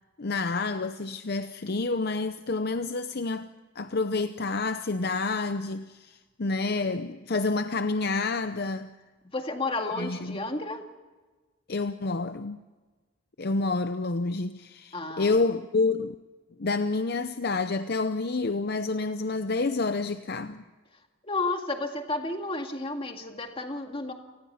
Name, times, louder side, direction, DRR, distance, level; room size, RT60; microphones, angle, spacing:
voice 1, 0.2-3.5 3.8-8.9 10.0-10.4 11.7-12.6 13.4-16.2 16.6-20.6, left 3 dB, 50° left, 0.7 m, -28 dB
voice 2, 9.2-10.9 14.9-15.3 21.2-24.1, left 2 dB, 25° left, 2.1 m, -32 dB
29.0 x 19.5 x 5.7 m
head